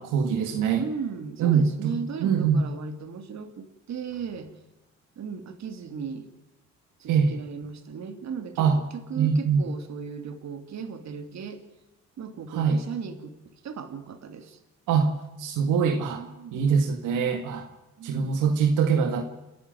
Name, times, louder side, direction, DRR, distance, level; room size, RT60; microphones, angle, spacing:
voice 1, 0.0-0.9 1.4-2.7 7.1-7.4 8.6-8.8 9.2-9.6 12.5-12.8 14.9-15.1 15.4-17.7 18.0-19.2, right 6 dB, 90° right, 5 dB, 2.0 m, -23 dB
voice 2, 0.7-4.6 5.2-6.3 7.0-8.7 9.1-11.6 12.2-14.6 16.2-16.7 18.0-18.4, right 6 dB, 60° right, 8 dB, 2.8 m, -36 dB
29.5 x 11.0 x 9.3 m, 1.0 s
cardioid pair, 90°, 30 cm